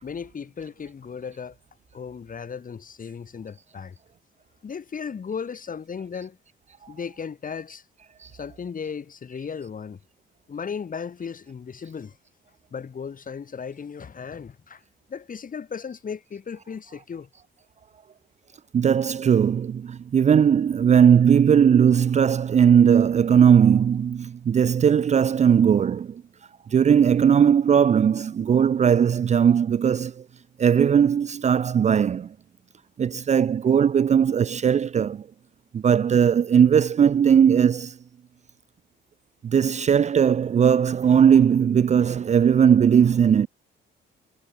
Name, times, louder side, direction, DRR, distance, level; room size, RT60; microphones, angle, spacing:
voice 1, 0.0-1.6 1.9-4.0 4.6-6.4 6.9-7.9 8.3-10.0 10.5-12.2 12.7-14.8 15.1-17.3, left 6 dB, 45° left, 5.3 m, -36 dB
voice 2, 18.7-26.2 26.7-30.2 30.6-32.3 33.0-35.3 35.7-37.9 39.4-43.5, right 8 dB, 35° right, 0.5 m, -18 dB
cardioid pair, 90°, 20 cm